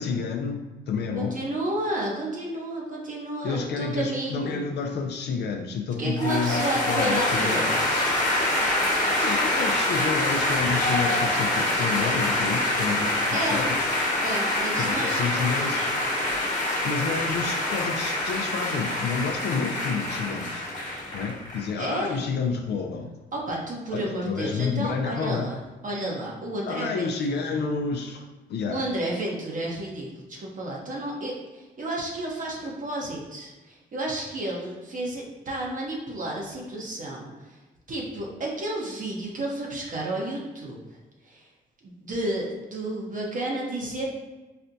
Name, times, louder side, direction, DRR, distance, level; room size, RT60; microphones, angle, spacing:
voice 1, 0.0-1.4 3.4-8.2 9.2-13.8 14.8-15.9 16.8-20.7 21.1-23.1 23.9-25.5 26.6-28.8, left 5 dB, 60° left, 3 dB, 0.4 m, -30 dB
voice 2, 1.1-4.6 6.0-7.8 13.3-13.6 14.2-15.5 21.8-22.2 23.3-25.6 25.8-27.6 28.7-37.6 37.9-40.8 41.2-41.5 41.8-44.1, right 1 dB, 40° right, -2 dB, 0.8 m, -31 dB
sound 1, 6.2-21.7, left 1 dB, 40° left, 1.2 m, -25 dB
4.2 x 2.1 x 2.6 m, 1.2 s
cardioid pair, 90°, 20 cm